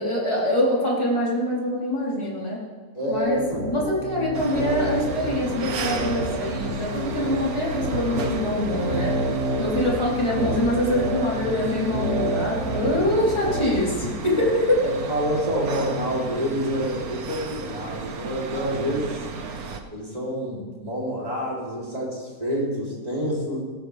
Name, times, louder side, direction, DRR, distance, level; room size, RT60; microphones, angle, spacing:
voice 1, 0.0-2.6 3.1-9.1 9.6-14.8, left 1 dB, 20° left, -6 dB, 3.9 m, -24 dB
voice 2, 3.0-3.7 14.4-14.5 14.9-19.2 19.9-23.6, equal, 25° right, -5 dB, 3.5 m, -27 dB
sound 1, 3.1-13.9, right 1 dB, 65° right, 5.1 m, -29 dB
sound 2, 4.3-19.8, right 5 dB, 85° right, 1.4 m, -35 dB
17.5 x 13.0 x 3.5 m, 1.4 s
omnidirectional pair, 1.5 m